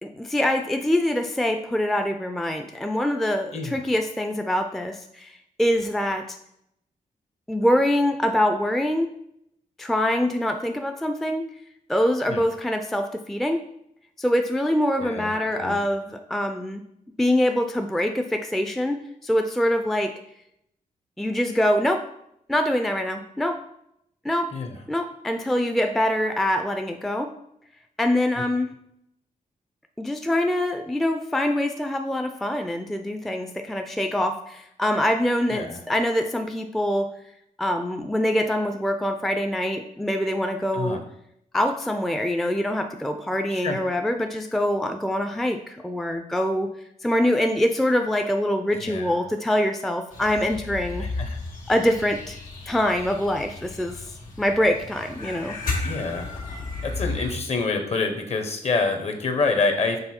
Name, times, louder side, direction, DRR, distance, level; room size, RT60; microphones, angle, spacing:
voice 1, 0.0-6.4 7.5-9.1 9.8-11.5 11.9-13.6 14.2-16.8 17.2-20.1 21.2-22.0 22.5-23.6 24.2-24.5 24.9-27.3 28.0-28.7 30.0-37.1 37.6-41.0 41.5-46.7 47.0-51.0 51.7-52.4 52.7-54.1 54.4-55.6, left 1 dB, ahead, 6 dB, 0.4 m, -24 dB
voice 2, 15.0-15.8 24.5-24.8 28.4-28.5 35.5-35.8 40.7-41.0 43.5-43.8 48.7-49.2 51.0-51.4 55.8-56.3 56.8-60.0, left 4 dB, 50° left, 6 dB, 0.9 m, -27 dB
sound 1, 50.1-57.3, left 3 dB, 75° left, 1.7 m, -34 dB
6.7 x 3.8 x 4.3 m, 0.75 s
wide cardioid pair, 125°, 14 cm